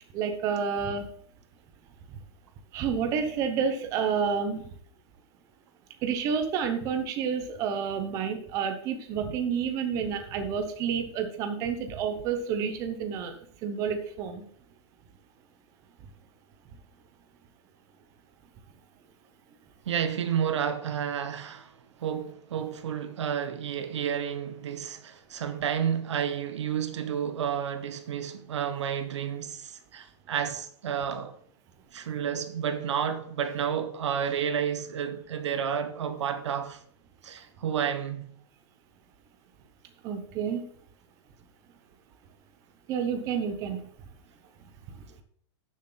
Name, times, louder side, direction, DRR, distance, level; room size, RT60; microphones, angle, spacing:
voice 1, 0.1-1.1 2.1-2.2 2.7-4.8 6.0-14.5 40.0-40.6 42.9-43.8 44.9-45.0, right 6 dB, 20° right, 0.9 m, -30 dB
voice 2, 19.8-31.4 31.9-36.8 37.2-38.3, right 8 dB, 85° right, 1.5 m, -31 dB
11.5 x 7.3 x 4.0 m
supercardioid pair, 170°, 15 cm